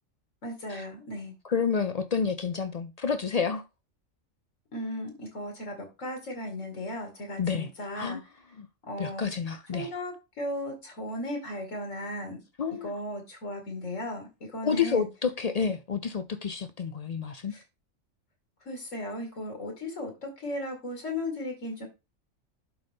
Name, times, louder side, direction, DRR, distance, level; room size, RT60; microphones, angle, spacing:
voice 1, 0.4-1.3 4.7-8.2 8.9-9.3 9.7-12.4 12.8-15.1 17.5-17.6 18.7-21.9, left 1 dB, 80° left, 2.5 m, -36 dB
voice 2, 1.4-3.6 7.4-7.7 7.9-8.2 8.6-8.7 9.0-9.9 12.6-13.0 14.6-17.5, left 6 dB, 55° left, 0.4 m, -29 dB
11.5 x 3.9 x 3.5 m
omnidirectional pair, 1.3 m